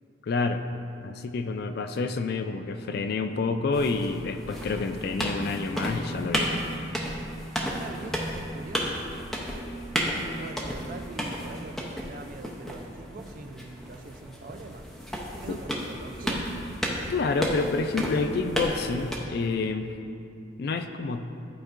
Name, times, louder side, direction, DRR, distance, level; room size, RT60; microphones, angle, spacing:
voice 1, 0.2-0.6 1.0-6.7 15.5-15.6 17.1-19.9 20.6-21.3, left 4 dB, 55° left, 8 dB, 0.3 m, -28 dB
sound 1, 3.7-19.2, equal, ahead, 0.6 m, -33 dB
voice 2, 7.8-9.4 10.1-14.9 15.2-16.7, right 3 dB, 45° right, 6 dB, 0.4 m, -43 dB
11.5 x 4.5 x 2.5 m, 2.6 s
head